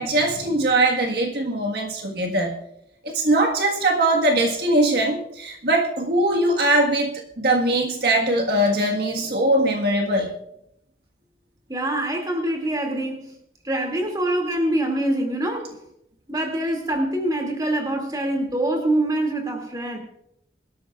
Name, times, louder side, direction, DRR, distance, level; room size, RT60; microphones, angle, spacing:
voice 1, 0.0-2.5 3.0-10.3, right 1 dB, 65° right, 1 dB, 1.6 m, -21 dB
voice 2, 11.7-13.3 13.6-15.7 16.3-20.0, right 1 dB, 20° right, 2 dB, 2.4 m, -24 dB
23.0 x 13.0 x 2.4 m, 0.78 s
head